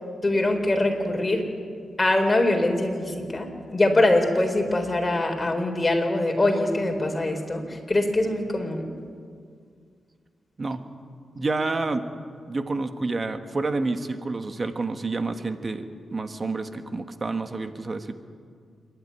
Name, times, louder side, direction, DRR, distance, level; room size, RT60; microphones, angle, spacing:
voice 1, 0.2-1.4 2.0-8.9, left 2 dB, 25° left, 3 dB, 4.2 m, -23 dB
voice 2, 11.3-12.1 12.5-15.9 16.1-18.1, right 3 dB, 35° right, 8 dB, 1.5 m, -28 dB
27.5 x 12.0 x 9.7 m, 2.1 s
cardioid pair, 75°, 0 cm